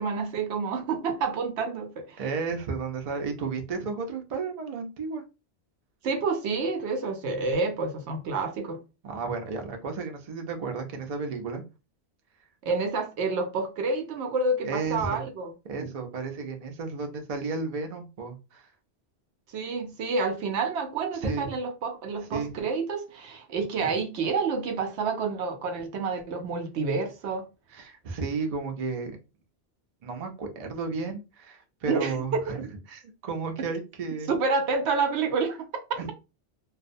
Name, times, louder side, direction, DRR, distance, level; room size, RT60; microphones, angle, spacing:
voice 1, 0.0-2.2 6.0-8.8 12.6-15.5 19.5-27.4 31.9-32.4 34.3-35.7, right 4 dB, 80° right, 0.8 m, -28 dB
voice 2, 2.2-5.2 9.0-11.6 14.7-15.2 15.7-18.7 21.2-21.5 22.3-22.5 27.7-29.2 30.0-34.3 36.0-36.1, right 4 dB, 50° right, 0.5 m, -33 dB
2.3 x 2.1 x 2.5 m
omnidirectional pair, 1.1 m